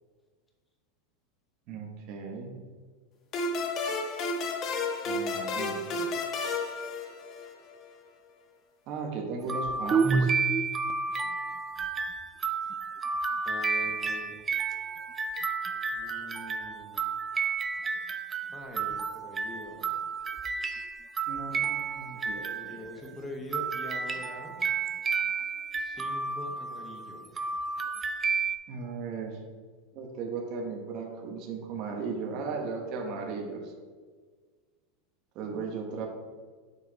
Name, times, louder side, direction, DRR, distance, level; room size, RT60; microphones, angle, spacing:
voice 1, 1.7-2.6 5.0-6.1 8.9-10.4 21.3-23.0 28.7-29.4 29.9-33.7 35.3-36.1, right 4 dB, 45° right, 0 dB, 1.3 m, -37 dB
sound 1, 3.3-7.7, left 3 dB, 35° left, 1.0 m, -32 dB
sound 2, 9.5-23.1 23.5-28.6, right 5 dB, 20° right, 0.4 m, -31 dB
voice 2, 13.4-14.4 15.9-17.1 18.5-19.9 22.5-24.6 25.7-27.4, left 1 dB, 10° left, 1 dB, 1.0 m, -43 dB
7.0 x 4.8 x 4.0 m, 1.5 s
supercardioid pair, 140°, 0 cm